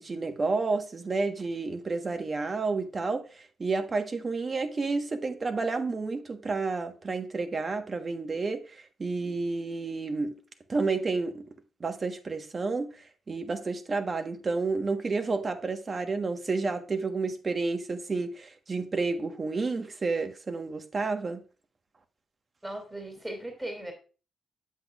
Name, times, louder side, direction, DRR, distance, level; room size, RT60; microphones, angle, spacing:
voice 1, 0.0-10.3 10.7-11.5 11.8-21.4, right 3 dB, 40° right, 1.3 m, -30 dB
voice 2, 22.6-23.9, right 1 dB, 15° right, 2.6 m, -37 dB
8.1 x 7.9 x 2.5 m
hypercardioid pair, 45°, 0 cm